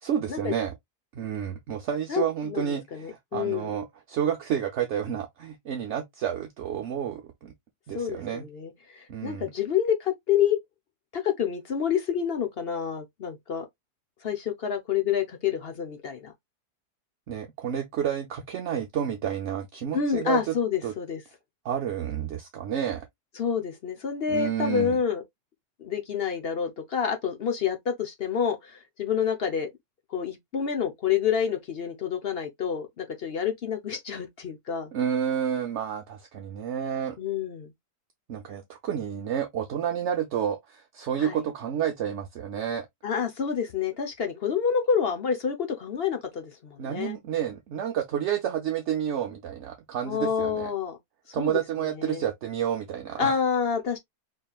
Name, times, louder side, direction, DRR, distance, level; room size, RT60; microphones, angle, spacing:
voice 1, 0.0-0.7 1.1-7.5 7.9-8.5 9.1-9.5 17.3-20.6 20.8-20.9 21.6-23.1 24.3-25.0 34.9-37.2 38.3-42.9 46.8-50.7 51.3-53.4, right 9 dB, 60° right, 0.8 m, -30 dB
voice 2, 2.1-3.7 7.9-10.6 11.1-13.6 14.2-16.3 19.9-21.2 23.4-25.2 25.8-29.7 30.1-34.9 37.2-37.7 41.2-41.4 43.0-47.2 50.0-51.0 51.3-51.6 52.0-52.2 53.2-54.0, left 7 dB, 50° left, 0.8 m, -28 dB
4.5 x 3.2 x 2.3 m
omnidirectional pair, 1.7 m